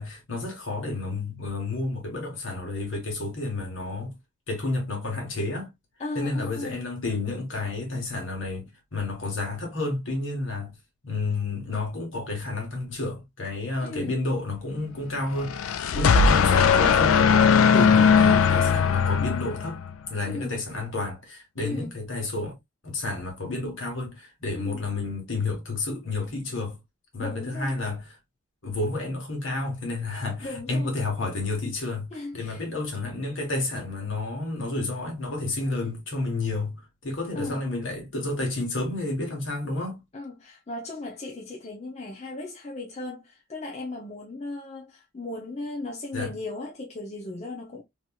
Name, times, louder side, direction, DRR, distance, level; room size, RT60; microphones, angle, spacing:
voice 1, 0.0-4.1 4.5-5.7 6.1-10.7 11.0-17.5 17.7-19.8 20.1-22.5 22.8-26.8 27.1-28.1 28.6-40.0 46.1-46.3, left 2 dB, 70° left, 1.5 m, -30 dB
voice 2, 6.0-6.8 13.8-14.2 15.9-16.2 20.2-20.6 21.6-21.9 24.5-24.8 27.2-27.8 30.4-30.9 32.1-32.6 35.6-35.8 37.3-37.6 40.1-47.8, left 2 dB, 30° left, 0.6 m, -36 dB
sound 1, 15.4-19.9, left 6 dB, 90° left, 0.4 m, -19 dB
3.0 x 2.9 x 2.3 m
head